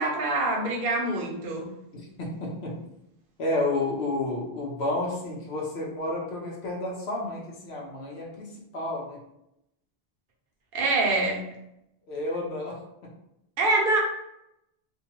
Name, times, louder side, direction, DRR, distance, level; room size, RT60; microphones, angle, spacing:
voice 1, 0.0-1.7 10.7-11.5 13.6-14.0, right 2 dB, 60° right, -2 dB, 0.8 m, -25 dB
voice 2, 2.2-2.8 3.4-9.2 12.1-13.1, left 2 dB, 90° left, -1 dB, 1.0 m, -31 dB
2.7 x 2.2 x 2.9 m, 0.82 s
omnidirectional pair, 1.0 m